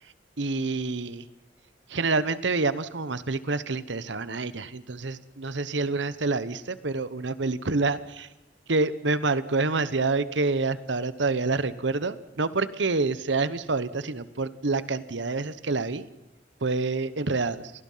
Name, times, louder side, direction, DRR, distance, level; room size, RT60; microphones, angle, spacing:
voice 1, 0.4-1.3 1.9-8.3 8.7-16.1 16.6-17.7, right 3 dB, 70° right, 15 dB, 1.0 m, -27 dB
29.0 x 19.5 x 5.7 m, 0.99 s
head